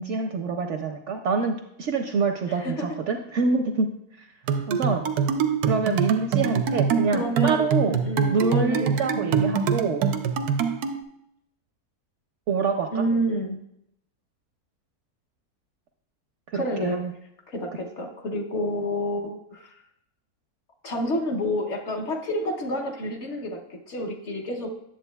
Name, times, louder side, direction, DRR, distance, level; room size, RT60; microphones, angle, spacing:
voice 1, 0.0-3.9 4.2-4.3 4.7-5.0 5.7-8.0 8.3-10.1 12.5-13.0 16.5-17.1, right 4 dB, 65° right, 4 dB, 0.7 m, -26 dB
voice 2, 2.5-3.0 6.4-6.5 7.1-9.7 12.9-13.6 16.5-17.0 17.5-19.8 20.8-24.7, equal, 55° left, 2 dB, 1.0 m, -29 dB
sound 1, 4.5-11.0, right 6 dB, 85° right, 1.1 m, -24 dB
9.1 x 7.5 x 2.2 m, 0.78 s
omnidirectional pair, 1.6 m